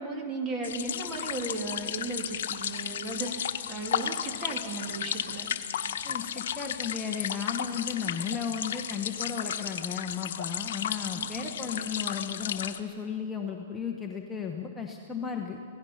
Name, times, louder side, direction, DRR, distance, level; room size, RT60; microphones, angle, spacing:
voice 1, 0.0-5.5 11.1-11.6, right 2 dB, 20° right, 3 dB, 2.3 m, -36 dB
sound 1, 0.6-12.8, left 9 dB, 65° left, 1.1 m, -34 dB
voice 2, 6.0-15.6, left 6 dB, 10° left, 1 dB, 1.2 m, -35 dB
27.0 x 17.5 x 5.8 m, 2.3 s
hypercardioid pair, 155°, 0 cm